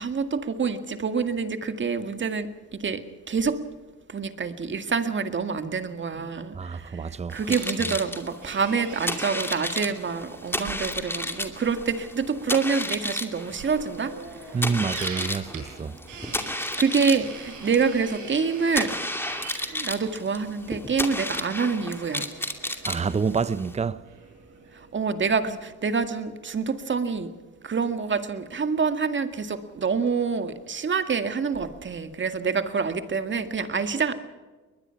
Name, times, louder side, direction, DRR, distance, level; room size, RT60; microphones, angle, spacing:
voice 1, 0.0-3.6 4.1-14.2 16.6-19.0 19.7-22.3 24.9-27.3 27.6-34.1, right 5 dB, 40° right, 2.0 m, -27 dB
voice 2, 6.5-7.4 7.8-7.9 14.5-16.0 22.9-24.0, right 5 dB, 20° right, 0.7 m, -28 dB
sound 1, 7.3-23.7, left 1 dB, 5° left, 2.5 m, -32 dB
sound 2, 7.5-25.6, right 5 dB, 80° right, 7.0 m, -44 dB
21.5 x 21.5 x 5.9 m
cardioid pair, 90°, 30 cm